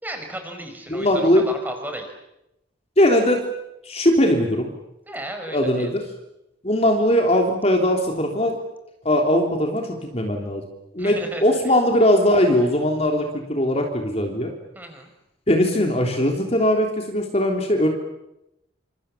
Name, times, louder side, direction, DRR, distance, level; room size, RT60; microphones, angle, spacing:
voice 1, 0.0-2.1 5.0-5.9 11.0-11.6 14.7-15.1, right 1 dB, 10° right, 5 dB, 5.1 m, -34 dB
voice 2, 0.9-1.4 3.0-3.4 3.8-4.7 5.5-6.0 6.6-8.5 9.0-10.6 10.9-14.5 15.5-17.9, left 1 dB, 30° left, 2 dB, 3.4 m, -20 dB
28.5 x 26.5 x 7.4 m, 0.88 s
head